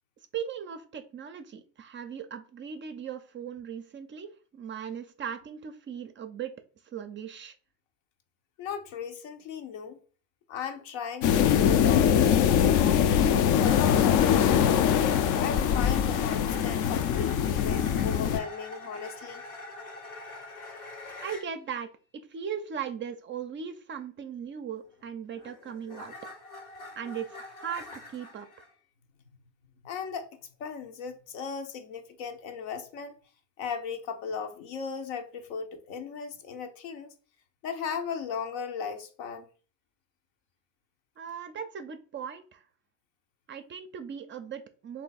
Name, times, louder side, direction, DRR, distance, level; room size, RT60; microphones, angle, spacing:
voice 1, 0.3-6.6 6.9-7.6 21.2-26.1 27.0-28.5 41.2-42.6 43.5-45.0, right 7 dB, 30° right, 0.4 m, -38 dB
voice 2, 8.6-10.0 10.5-14.8 15.4-19.4 29.8-30.3 30.6-33.1 33.6-37.1 37.6-39.5, left 6 dB, 75° left, 0.9 m, -37 dB
sound 1, 11.2-18.4, left 9 dB, 50° left, 0.5 m, -23 dB
sound 2, 13.5-21.5 24.9-28.7, left 2 dB, 90° left, 1.5 m, -44 dB
3.3 x 2.7 x 3.9 m
supercardioid pair, 90°, 40 cm